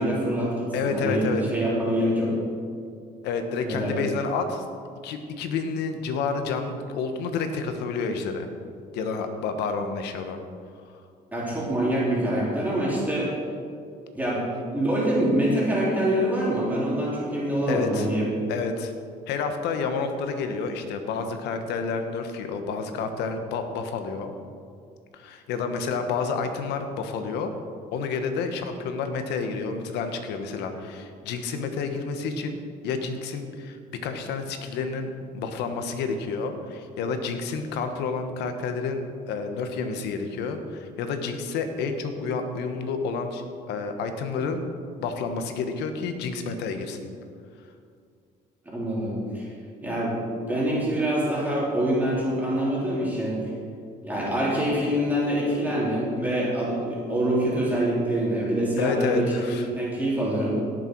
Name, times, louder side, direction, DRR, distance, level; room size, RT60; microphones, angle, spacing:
voice 1, 0.0-2.3 3.6-4.0 11.3-13.3 14.1-14.4 14.7-18.3 48.7-49.5 49.8-50.1 50.5-53.4 54.0-60.5, right 1 dB, 10° right, -6 dB, 3.4 m, -25 dB
voice 2, 0.7-1.4 3.2-4.6 5.0-8.5 8.9-10.4 17.7-18.1 18.5-18.9 19.3-24.3 25.1-27.5 27.9-32.6 32.8-39.0 39.3-44.6 45.0-47.0 58.8-59.7, left 5 dB, 85° left, 7 dB, 1.2 m, -29 dB
17.5 x 6.8 x 4.6 m, 2.3 s
cardioid pair, 110°, 17 cm